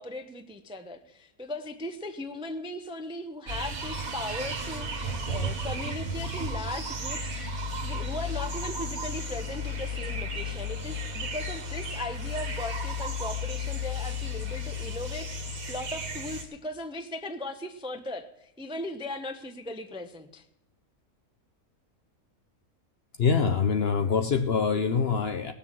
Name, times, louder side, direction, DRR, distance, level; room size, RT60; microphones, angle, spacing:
voice 1, 0.0-20.4, left 1 dB, 5° right, 7 dB, 0.4 m, -38 dB
sound 1, 3.5-16.4, left 1 dB, 70° right, 2.1 m, -33 dB
voice 2, 23.2-25.5, left 5 dB, 55° left, 8 dB, 0.8 m, -24 dB
17.5 x 6.9 x 7.4 m, 0.81 s
omnidirectional pair, 1.5 m